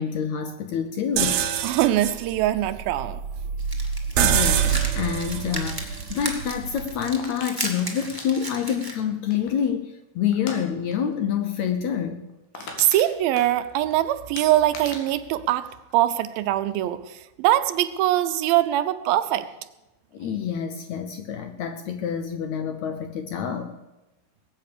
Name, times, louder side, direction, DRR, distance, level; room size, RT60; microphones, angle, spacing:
voice 1, 0.0-1.4 4.2-12.3 20.1-23.8, left 8 dB, 70° left, 1.7 m, -27 dB
sound 1, 1.2-7.0, right 8 dB, 70° right, 1.8 m, -26 dB
voice 2, 1.6-3.2 12.6-19.5, right 13 dB, 85° right, 2.6 m, -23 dB
sound 2, 3.6-8.9, right 1 dB, 10° right, 1.3 m, -35 dB
sound 3, 7.2-9.7 10.3-10.6 10.9-11.1 11.4-11.5 11.9-12.0 12.3-13.9 14.4-16.4 16.7-17.1, left 4 dB, 90° left, 4.1 m, -40 dB
20.0 x 8.7 x 6.8 m
omnidirectional pair, 4.1 m